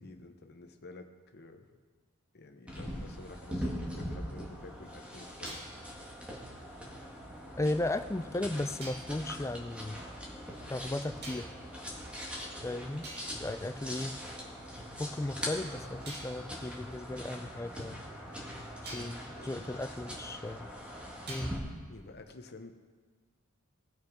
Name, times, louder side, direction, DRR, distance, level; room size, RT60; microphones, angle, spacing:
voice 1, 0.0-1.8 2.3-5.7 18.9-19.7 21.9-22.7, left 2 dB, 50° left, 6 dB, 0.9 m, -51 dB
sound 1, 2.7-21.6, equal, 5° right, 1.9 m, -42 dB
sound 2, 2.8-4.3 5.4-7.6 8.8-9.2 11.2-11.8 12.5-12.6 13.0-14.7 16.0-18.2 18.8-19.3 21.3-21.8, right 1 dB, 50° right, 2.5 m, -50 dB
voice 2, 7.6-10.0 10.7-11.5 12.6-14.2 15.0-18.0 18.9-20.7 21.3-21.6, left 1 dB, 15° left, 10 dB, 0.4 m, -36 dB
19.0 x 6.4 x 4.8 m, 1.5 s
head